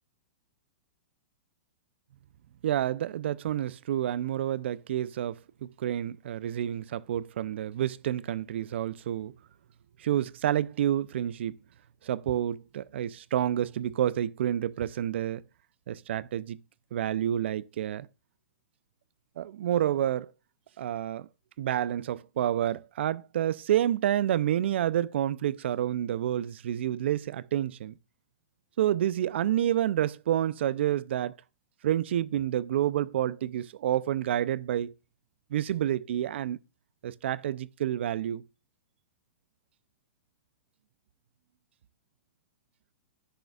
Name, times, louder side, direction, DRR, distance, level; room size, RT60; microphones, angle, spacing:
voice 1, 2.6-9.3 10.0-11.6 12.0-15.4 15.9-16.6 16.9-18.1 19.4-20.3 20.8-21.3 21.6-28.0 28.8-31.3 31.8-34.9 35.5-36.6 37.0-38.4, right 11 dB, 65° right, 0.4 m, -29 dB
10.5 x 6.5 x 2.3 m
hypercardioid pair, 165°, 7 cm